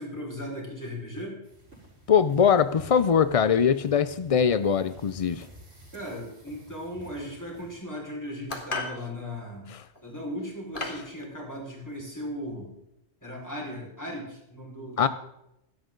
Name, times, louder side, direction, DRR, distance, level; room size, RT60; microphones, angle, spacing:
voice 1, 0.0-1.4 5.9-9.7 10.0-12.7 13.2-15.1, equal, 15° left, -2 dB, 4.9 m, -37 dB
sound 1, 1.4-7.8, equal, 75° right, 6.3 m, -50 dB
voice 2, 2.1-5.4 15.0-15.1, left 7 dB, 60° left, 13 dB, 0.3 m, -22 dB
sound 2, 8.5-9.0 10.0-10.1 10.7-11.1, left 3 dB, 40° left, 2.2 m, -33 dB
17.0 x 13.5 x 3.8 m, 0.83 s
omnidirectional pair, 1.3 m